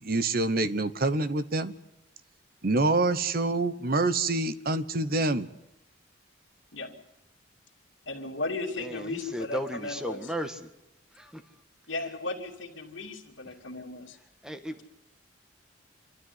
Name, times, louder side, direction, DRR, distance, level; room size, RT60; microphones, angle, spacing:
voice 1, 0.0-1.8 2.6-5.5, right 2 dB, 50° right, 13 dB, 1.0 m, -26 dB
voice 2, 8.1-10.3 11.9-14.2, left 2 dB, 90° left, -2 dB, 2.6 m, -35 dB
voice 3, 8.7-10.7 11.1-11.4 14.4-14.9, equal, 5° right, 8 dB, 1.5 m, -35 dB
27.0 x 13.0 x 9.5 m, 0.91 s
head